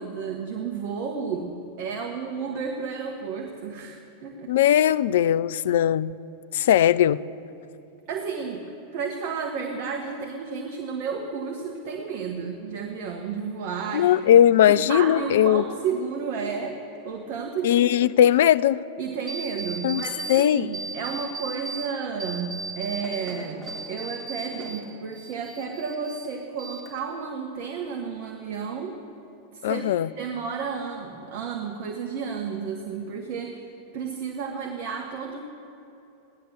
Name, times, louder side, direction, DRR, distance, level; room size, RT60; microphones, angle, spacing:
voice 1, 0.0-1.5 1.8-4.5 8.1-14.4 14.7-18.0 19.0-29.0 29.5-33.6 33.9-35.4, right 5 dB, 45° right, 2 dB, 1.3 m, -32 dB
voice 2, 4.5-6.1 6.5-7.2 13.9-15.6 17.6-18.8 19.8-20.0 20.3-20.7 29.6-30.1, left 11 dB, 55° left, 18 dB, 0.3 m, -19 dB
sound 1, 19.3-20.4 20.7-21.9 22.2-24.8 25.1-26.3 26.6-27.2, right 3 dB, 10° right, 3.5 m, -36 dB
16.5 x 11.0 x 6.6 m, 2.9 s
figure-of-eight pair, 90°, 0 cm